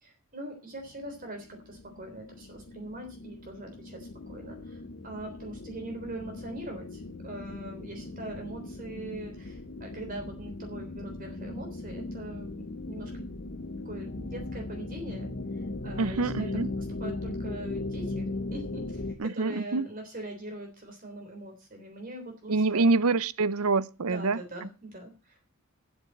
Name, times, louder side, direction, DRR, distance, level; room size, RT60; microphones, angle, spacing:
voice 1, 0.0-13.4 13.9-16.5 17.0-22.8 24.1-25.5, right 1 dB, 40° right, 3.5 m, -42 dB
sound 1, 0.8-19.1, left 2 dB, 50° left, 1.1 m, -38 dB
voice 2, 16.0-16.7 19.2-19.9 22.5-24.4, right 3 dB, 85° right, 0.7 m, -26 dB
8.2 x 8.0 x 8.6 m
head